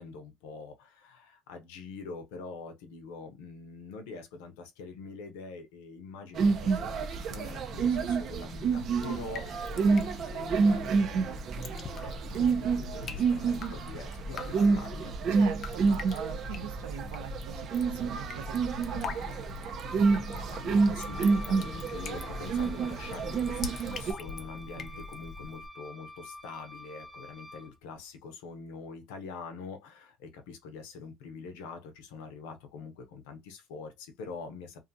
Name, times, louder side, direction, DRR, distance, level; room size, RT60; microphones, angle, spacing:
voice 1, 0.0-15.1 20.1-34.8, left 4 dB, 85° left, 0.7 m, -45 dB
sound 1, 6.4-24.1, right 4 dB, 55° right, 0.6 m, -29 dB
Drip, 8.7-25.7, left 4 dB, 50° left, 0.6 m, -43 dB
voice 2, 15.3-17.7 17.9-18.5 18.9-19.4 24.9-25.0, right 8 dB, 85° right, 0.9 m, -43 dB
Wind instrument woodwind instrument, 21.0-27.7, left 2 dB, 10° left, 1.0 m, -47 dB
2.6 x 2.4 x 2.6 m
supercardioid pair, 90°, 0 cm